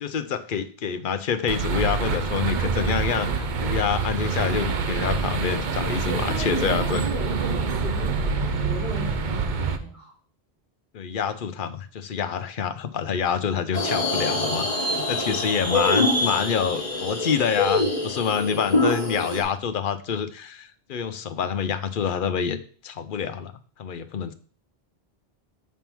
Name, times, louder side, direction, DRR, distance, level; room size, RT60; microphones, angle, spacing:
voice 1, 0.0-7.0 10.9-22.6 22.8-23.5 23.8-24.3, left 7 dB, 55° left, 11 dB, 0.7 m, -27 dB
sound 1, 1.5-9.8, right 4 dB, 50° right, 0.7 m, -26 dB
voice 2, 6.0-10.1 15.2-15.4, right 1 dB, 30° right, -6 dB, 3.3 m, -35 dB
sound 2, 13.7-19.4, left 2 dB, 40° left, 1.8 m, -25 dB
7.1 x 3.6 x 6.0 m, 0.43 s
omnidirectional pair, 1.1 m